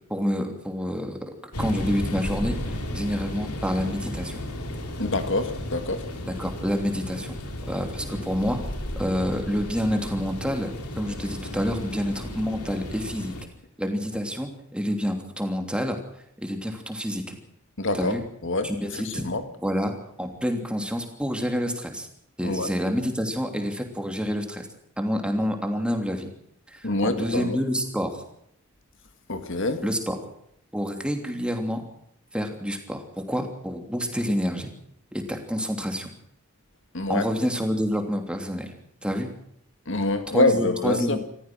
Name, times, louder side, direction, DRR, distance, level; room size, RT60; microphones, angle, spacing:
voice 1, 0.1-1.2 1.6-4.4 6.2-7.3 7.7-8.6 9.0-13.3 13.8-16.0 16.4-17.4 17.9-18.2 18.6-19.3 19.6-19.9 20.2-22.1 22.4-24.7 25.0-26.3 26.7-28.2 29.8-30.2 30.7-31.9 32.3-34.7 35.1-36.1 37.1-38.7 39.0-39.3 40.3-41.2, equal, 5° right, 4 dB, 3.1 m, -28 dB
sound 1, 1.5-13.4, left 1 dB, 90° left, 3.7 m, -34 dB
voice 2, 5.0-6.0 17.8-18.1 18.4-18.7 19.2-19.4 22.4-22.7 26.8-27.6 29.3-29.8 36.9-37.3 39.9-41.2, left 2 dB, 55° left, 8 dB, 1.9 m, -25 dB
28.5 x 14.5 x 6.3 m, 0.72 s
head